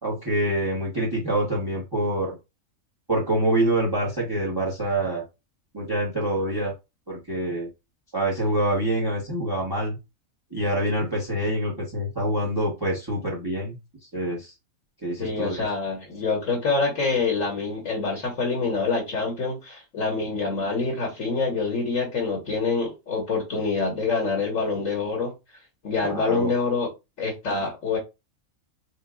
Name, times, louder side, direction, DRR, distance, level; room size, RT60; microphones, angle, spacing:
voice 1, 0.0-2.4 3.1-5.2 5.7-6.7 7.1-7.7 8.1-10.0 10.5-13.8 14.1-14.5 15.0-15.6 26.0-26.5, right 1 dB, 20° right, 1.0 m, -26 dB
voice 2, 15.2-25.3 25.8-26.9 27.2-28.0, left 4 dB, 70° left, 1.8 m, -26 dB
6.5 x 2.3 x 2.4 m
omnidirectional pair, 1.4 m